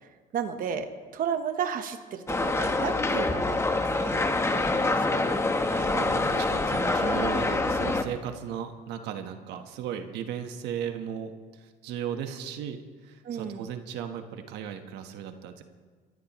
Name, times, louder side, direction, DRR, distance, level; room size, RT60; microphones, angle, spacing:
voice 1, 0.3-0.9 1.1-4.2 4.5-5.2 5.7-5.9 13.2-13.7, right 7 dB, 55° right, 7 dB, 1.1 m, -33 dB
sound 1, 2.3-8.0, left 2 dB, 15° left, 1.1 m, -26 dB
voice 2, 5.9-15.6, right 8 dB, 90° right, 6 dB, 1.3 m, -36 dB
24.5 x 14.5 x 3.1 m, 1.5 s
cardioid pair, 110°, 17 cm